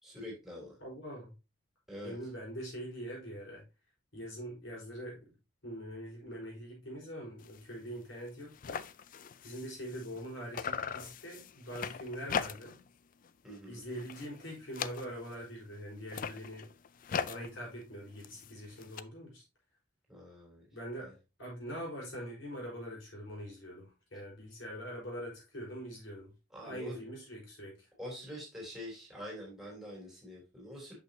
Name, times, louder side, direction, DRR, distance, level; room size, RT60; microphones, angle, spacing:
voice 1, 0.0-0.7 1.9-2.2 13.4-13.8 20.1-20.6 21.0-21.1 26.5-27.0 28.0-31.0, equal, ahead, 3.2 m, -45 dB
voice 2, 0.8-1.3 2.0-3.6 4.1-5.3 5.6-8.8 9.4-12.8 13.7-16.7 17.3-19.4 20.7-21.1 21.4-26.3 26.6-27.8, equal, 70° left, 4.8 m, -43 dB
sound 1, 7.4-7.6 8.0-8.1 8.3-10.3 10.5-12.9 13.2-13.6 13.9-15.4 16.0-19.0, left 7 dB, 45° left, 0.4 m, -40 dB
8.3 x 6.2 x 2.8 m
head